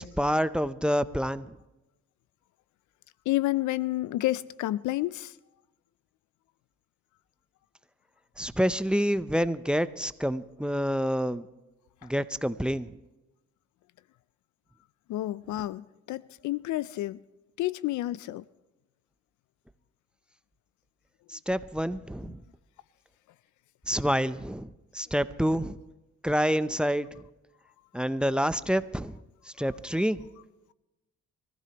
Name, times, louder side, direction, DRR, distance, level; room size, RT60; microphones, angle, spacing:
voice 1, 0.0-1.6 8.4-11.5 12.0-13.0 21.3-22.4 23.9-25.8 26.2-27.1 27.9-29.2 29.5-30.2, equal, 5° right, 0.5 m, -28 dB
voice 2, 3.3-5.4 12.0-12.1 15.1-17.2 17.6-18.4, left 16 dB, 75° left, 0.4 m, -30 dB
24.0 x 15.0 x 2.9 m
cardioid pair, 90°, 30 cm